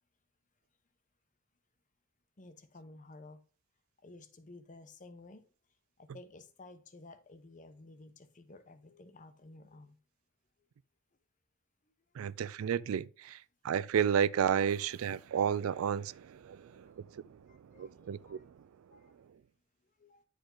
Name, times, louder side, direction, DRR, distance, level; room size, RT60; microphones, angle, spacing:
voice 1, 2.4-3.4 4.0-5.4 6.0-10.0 16.5-17.0 17.5-18.4 18.9-19.2 20.0-20.2, left 2 dB, 40° left, 0.8 m, -54 dB
voice 2, 12.1-19.0 19.3-19.4, right 8 dB, 85° right, 0.4 m, -33 dB
10.5 x 5.0 x 3.8 m
head